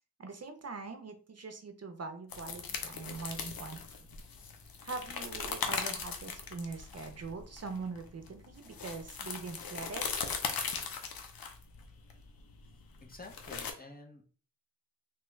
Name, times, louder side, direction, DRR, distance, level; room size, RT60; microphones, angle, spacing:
voice 1, 0.2-3.8 4.8-10.0, right 4 dB, 45° right, 6 dB, 0.5 m, -42 dB
sound 1, 2.3-13.7, left 6 dB, 90° left, 0.6 m, -39 dB
voice 2, 13.0-14.2, left 3 dB, 25° left, 2 dB, 0.7 m, -50 dB
3.0 x 2.3 x 3.1 m, 0.40 s
wide cardioid pair, 75°, 34 cm